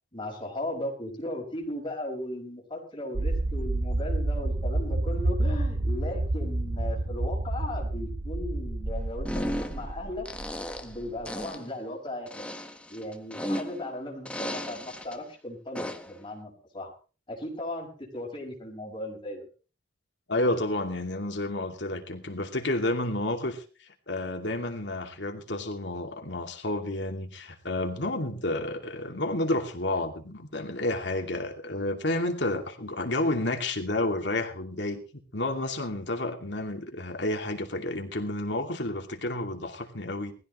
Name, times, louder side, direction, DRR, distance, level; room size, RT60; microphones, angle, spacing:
voice 1, 0.1-10.3 10.8-12.4 12.9-16.9 17.3-19.4, left 1 dB, 25° left, 5.7 m, -37 dB
sound 1, 3.1-11.2, right 1 dB, 75° right, 1.0 m, -29 dB
sound 2, 9.2-9.9 10.3-11.0 11.3-11.7 12.3-13.9 14.3-15.2 15.8-16.2, equal, 5° left, 1.4 m, -35 dB
voice 2, 20.3-35.0 35.3-40.3, left 2 dB, 70° left, 2.7 m, -30 dB
20.5 x 15.0 x 3.3 m
head